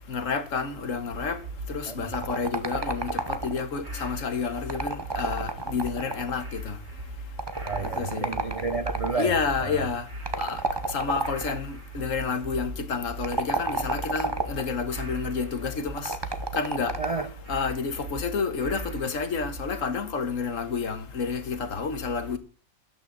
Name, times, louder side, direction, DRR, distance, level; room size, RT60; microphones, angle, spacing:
voice 1, 0.1-1.4 1.7-6.8 8.0-8.3 9.2-10.0 10.4-10.6 10.9-16.1 16.6-16.9 17.5-22.4, left 5 dB, 60° left, 1.6 m, -30 dB
sound 1, 1.1-19.8, right 2 dB, 75° right, 3.7 m, -40 dB
sound 2, 2.1-3.8 4.6-6.4 7.4-9.2 10.3-11.6 13.1-14.7 16.0-17.3, right 3 dB, 20° right, 0.8 m, -31 dB
voice 2, 7.6-9.9 17.0-17.3, right 4 dB, 45° right, 0.4 m, -31 dB
13.0 x 8.9 x 4.0 m
omnidirectional pair, 1.6 m